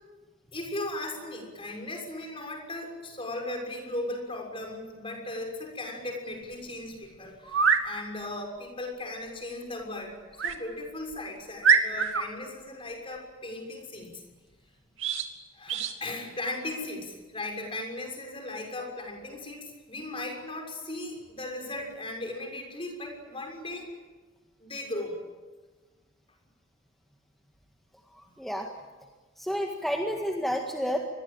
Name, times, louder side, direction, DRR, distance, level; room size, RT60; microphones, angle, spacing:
voice 1, 0.5-14.2 15.5-23.9 24.6-25.1, left 2 dB, 25° left, 2 dB, 6.4 m, -37 dB
sound 1, 6.5-6.6 7.4-7.9 10.4-10.6 11.1-11.2 11.6-12.3 15.0-15.3 15.7-15.9, right 6 dB, 70° right, 2.7 m, -24 dB
voice 2, 28.4-28.7 29.4-31.0, equal, ahead, 1 dB, 1.9 m, -30 dB
27.5 x 22.0 x 8.9 m, 1.3 s
head